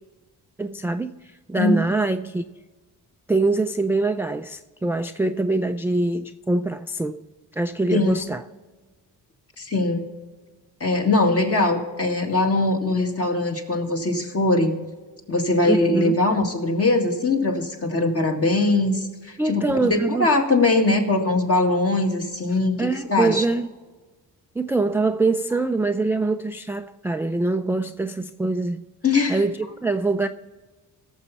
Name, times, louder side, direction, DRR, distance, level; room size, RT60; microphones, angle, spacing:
voice 1, 0.6-2.4 3.3-7.2 7.5-8.4 15.6-16.1 19.4-20.3 22.8-23.7 24.6-28.8 29.3-30.3, right 2 dB, 5° right, 0.4 m, -24 dB
voice 2, 7.9-8.2 9.6-10.1 10.8-14.8 15.3-23.4 29.0-29.4, left 2 dB, 35° left, 2.1 m, -21 dB
17.0 x 7.2 x 4.2 m
cardioid pair, 85°, 39 cm